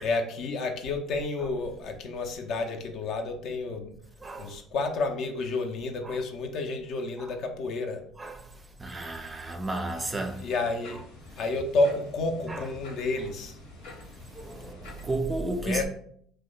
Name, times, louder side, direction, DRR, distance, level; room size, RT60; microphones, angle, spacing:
voice 1, 0.0-3.9 4.4-8.0 10.4-11.0 11.4-13.6 15.6-15.8, left 3 dB, 60° left, 0.5 m, -30 dB
voice 2, 4.2-4.5 6.0-6.2 7.2-7.3 8.2-8.4 8.8-10.4 12.5-12.7 14.3-15.8, right 2 dB, 20° right, 0.4 m, -33 dB
sound 1, 9.9-15.1, left 3 dB, 90° left, 0.9 m, -47 dB
2.8 x 2.1 x 3.7 m
supercardioid pair, 80°, 0 cm